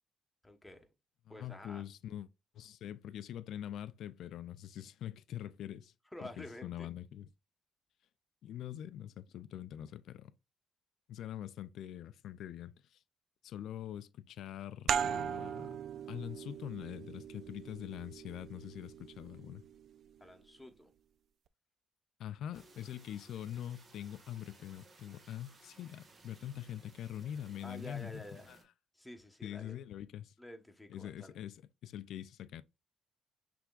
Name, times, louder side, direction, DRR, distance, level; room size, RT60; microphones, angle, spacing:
voice 1, 0.4-0.9 1.3-1.8 6.1-6.9 20.2-20.9 27.6-28.5 28.9-29.8 30.4-31.4, left 1 dB, 10° left, 1.2 m, -49 dB
voice 2, 1.3-2.3 2.5-5.9 6.2-7.3 8.4-10.3 11.1-13.0 13.4-15.8 16.1-19.6 22.2-28.6 29.4-30.3 30.9-31.6 31.8-32.6, left 11 dB, 75° left, 0.4 m, -44 dB
sound 1, 14.9-20.2, right 8 dB, 65° right, 0.3 m, -39 dB
sound 2, 22.5-28.6, right 3 dB, 40° right, 1.4 m, -61 dB
6.0 x 3.4 x 2.4 m
cardioid pair, 90°, 0 cm